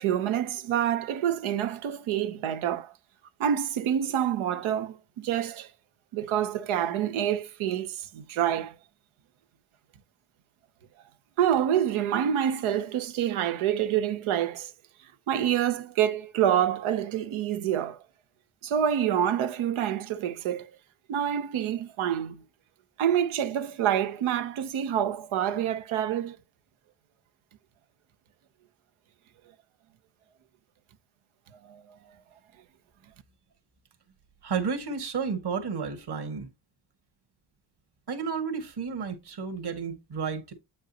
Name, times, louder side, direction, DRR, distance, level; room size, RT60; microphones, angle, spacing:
voice 1, 0.0-2.9 3.4-5.7 6.1-8.7 11.4-14.7 15.3-18.0 18.6-20.7 21.1-22.5 23.0-26.4 31.6-31.8, right 10 dB, 85° right, 1.0 m, -27 dB
voice 2, 34.4-36.5 38.1-40.5, right 5 dB, 55° right, 2.0 m, -32 dB
8.1 x 5.4 x 2.9 m
cardioid pair, 70°, 47 cm